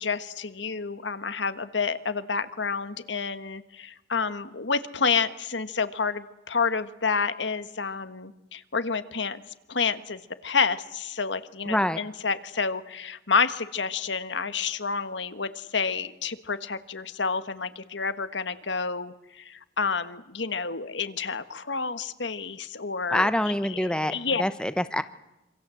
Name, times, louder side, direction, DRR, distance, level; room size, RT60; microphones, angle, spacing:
voice 1, 0.0-9.4 9.7-23.3 23.7-24.4, left 5 dB, 85° left, 11 dB, 1.5 m, -29 dB
voice 2, 11.6-12.0 23.1-25.0, left 1 dB, 5° left, 11 dB, 0.9 m, -26 dB
27.0 x 26.0 x 7.8 m, 0.92 s
head